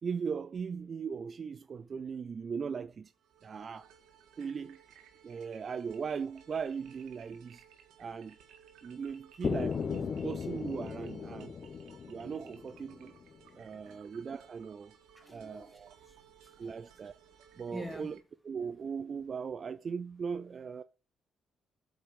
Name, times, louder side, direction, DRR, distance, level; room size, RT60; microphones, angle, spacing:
voice 1, 0.0-3.1 3.4-3.9 4.4-4.8 5.2-7.6 8.0-8.4 8.8-11.5 12.1-13.2 13.5-14.9 15.3-15.9 16.6-17.1 17.6-18.2 18.4-20.8, right 6 dB, 45° right, 0.4 m, -38 dB
sound 1, 3.1-18.2, right 8 dB, 85° right, 1.5 m, -59 dB
sound 2, 9.4-13.3, left 6 dB, 50° left, 0.8 m, -37 dB
voice 2, 15.2-16.8 17.7-18.1, equal, ahead, 2.6 m, -47 dB
8.1 x 4.8 x 6.3 m
cardioid pair, 90°, 0 cm